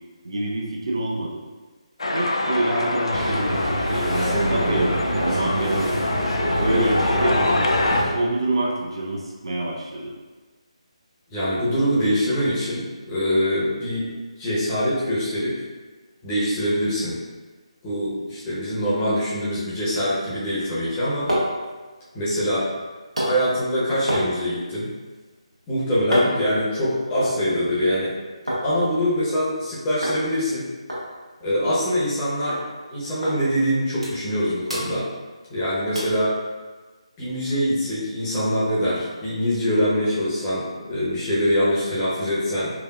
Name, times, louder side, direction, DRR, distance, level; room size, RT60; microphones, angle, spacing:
voice 1, 0.2-1.5 2.1-6.1 6.6-7.7 8.1-10.2, right 1 dB, 50° right, -2 dB, 0.6 m, -27 dB
sound 1, 2.0-8.0, left 2 dB, 60° left, 0.4 m, -25 dB
sound 2, 3.1-8.1, right 1 dB, 10° right, 1.0 m, -25 dB
voice 2, 11.3-15.6 16.2-17.2 17.8-21.3 22.1-22.7 23.2-24.9 25.7-28.1 28.6-30.7 31.4-32.6 32.9-35.1 35.5-36.4 37.2-42.7, equal, 15° left, -9 dB, 0.9 m, -24 dB
sound 3, 21.0-28.7 29.0-29.6 30.0-30.2 30.5-30.6 30.9-32.2 32.5-32.6 33.2-33.4 33.7-34.4 34.6-35.6 35.9-36.2 36.7-36.8, equal, 80° right, 1.3 m, -31 dB
4.7 x 2.5 x 2.4 m, 1.3 s
figure-of-eight pair, 150°, 3 cm